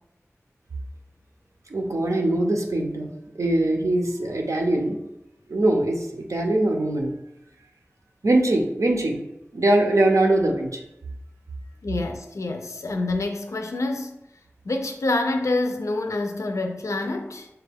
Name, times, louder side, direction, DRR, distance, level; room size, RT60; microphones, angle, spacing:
voice 1, 1.7-5.0 5.5-7.1 8.2-9.2 9.5-10.8, right 1 dB, 85° right, 1 dB, 0.6 m, -22 dB
voice 2, 11.8-14.2 14.7-17.5, left 2 dB, 75° left, 5 dB, 0.4 m, -27 dB
5.6 x 2.2 x 3.4 m, 0.87 s
wide cardioid pair, 60°, 5 cm